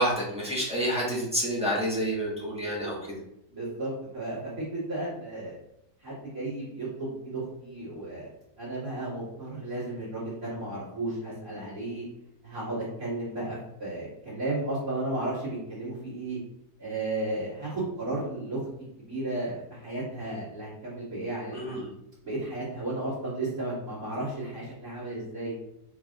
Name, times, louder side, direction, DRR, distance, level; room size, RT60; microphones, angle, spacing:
voice 1, 0.0-3.0 21.5-21.9, right 1 dB, 5° right, -7 dB, 0.9 m, -28 dB
voice 2, 3.5-5.6 6.0-8.3 8.6-12.0 12.4-16.4 16.8-18.7 19.0-21.8 22.2-25.5, right 2 dB, 60° right, -10 dB, 2.2 m, -34 dB
4.8 x 3.3 x 2.4 m, 0.82 s
omnidirectional pair, 1.8 m